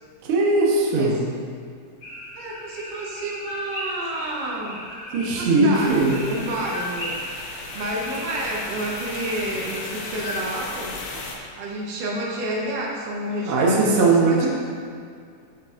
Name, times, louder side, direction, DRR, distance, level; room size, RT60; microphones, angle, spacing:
voice 1, 0.2-1.2 5.1-6.2 13.5-14.5, right 3 dB, 55° right, -3 dB, 1.7 m, -19 dB
sound 1, 2.0-10.4, equal, 45° left, 2.0 m, -36 dB
voice 2, 2.4-7.2 7.7-11.0 11.6-14.5, right 1 dB, 80° right, -3 dB, 2.7 m, -30 dB
sound 2, 5.7-11.4, left 3 dB, 90° left, 1.2 m, -36 dB
9.5 x 8.7 x 2.6 m, 2.3 s
omnidirectional pair, 3.7 m